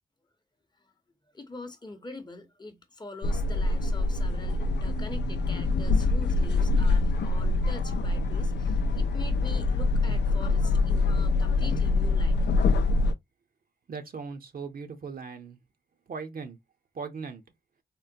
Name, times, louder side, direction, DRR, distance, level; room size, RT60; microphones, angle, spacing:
voice 1, 1.3-12.4, left 2 dB, 25° left, 0.8 m, -44 dB
sound 1, 3.2-13.1, left 3 dB, 80° left, 0.4 m, -25 dB
voice 2, 13.9-15.6 16.1-16.6 16.9-17.4, right 5 dB, 55° right, 0.7 m, -38 dB
3.7 x 2.1 x 2.6 m
cardioid pair, 65°, 18 cm